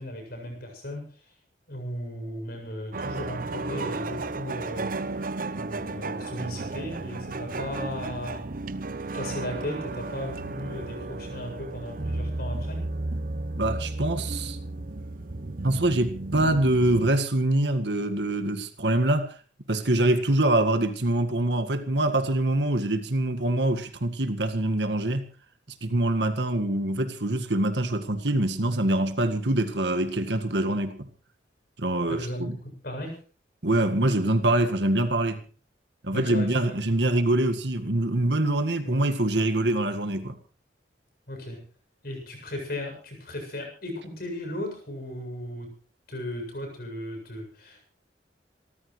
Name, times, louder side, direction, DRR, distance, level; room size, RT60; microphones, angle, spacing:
voice 1, 0.0-1.3 1.7-5.0 5.6-8.5 9.1-12.9 32.1-33.2 36.1-36.8 38.8-39.0 41.3-41.6 42.0-45.7 46.1-47.9, left 1 dB, 60° left, 7.6 m, -36 dB
sound 1, 2.9-17.1, right 2 dB, 50° right, 0.9 m, -33 dB
voice 2, 13.6-14.6 15.6-19.3 19.7-25.3 25.8-31.1 31.8-32.6 33.6-35.4 36.0-40.4, right 1 dB, 70° right, 1.8 m, -24 dB
27.5 x 14.0 x 3.3 m
head